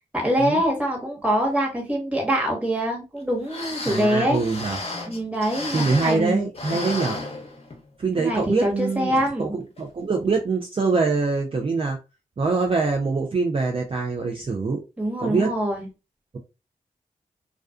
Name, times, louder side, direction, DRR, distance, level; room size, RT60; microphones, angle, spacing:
voice 1, 0.1-4.4 5.1-6.5 6.7-6.9 8.1-9.5 15.0-15.9, equal, 10° right, 1.3 m, -24 dB
sound 1, 3.2-3.3 3.5-6.3 6.5-7.9 8.3-8.4 9.1-9.3 9.8-9.9, left 2 dB, 45° left, 0.8 m, -33 dB
voice 2, 3.9-4.8 5.7-7.2 8.0-9.1 9.4-12.0 12.4-14.8 15.2-15.5, right 4 dB, 40° right, 0.5 m, -24 dB
2.3 x 2.3 x 2.3 m
cardioid pair, 45°, 14 cm